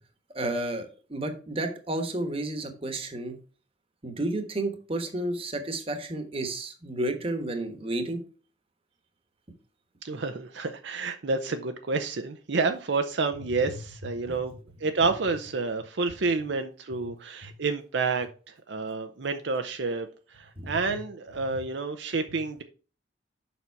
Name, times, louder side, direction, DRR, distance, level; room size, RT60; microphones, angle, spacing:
voice 1, 0.3-3.4 4.0-8.2 13.7-13.8 14.2-14.4 17.0-17.1 17.4-17.5 20.6-21.0 21.5-21.6, right 1 dB, 30° right, 7 dB, 1.2 m, -32 dB
voice 2, 10.0-14.5 14.8-22.6, right 4 dB, 65° right, 7 dB, 0.6 m, -29 dB
7.2 x 5.5 x 4.6 m, 0.37 s
head